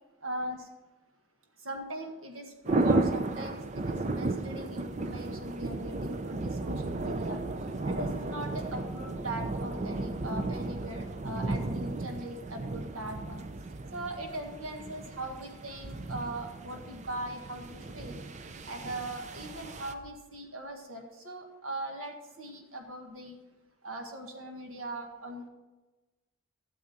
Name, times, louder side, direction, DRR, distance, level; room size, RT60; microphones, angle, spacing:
voice 1, 0.2-0.7 1.6-7.4 7.8-13.4 13.9-18.2 18.6-23.4 23.8-25.5, right 1 dB, 65° right, 3 dB, 1.7 m, -40 dB
sound 1, 2.6-19.9, right 2 dB, 30° right, 0.5 m, -34 dB
13.0 x 7.4 x 4.3 m, 1.1 s
head